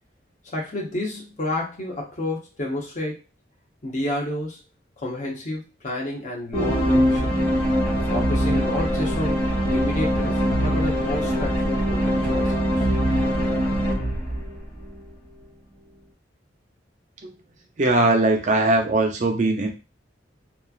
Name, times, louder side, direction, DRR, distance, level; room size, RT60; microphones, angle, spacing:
voice 1, 0.5-3.2 3.8-4.6 5.0-7.3 8.1-12.9, left 1 dB, 40° left, -2 dB, 0.8 m, -30 dB
sound 1, 6.5-15.0, equal, 25° left, 1.3 m, -22 dB
voice 2, 17.8-19.7, right 2 dB, 40° right, 4 dB, 0.5 m, -20 dB
3.0 x 2.3 x 2.4 m, 0.30 s
head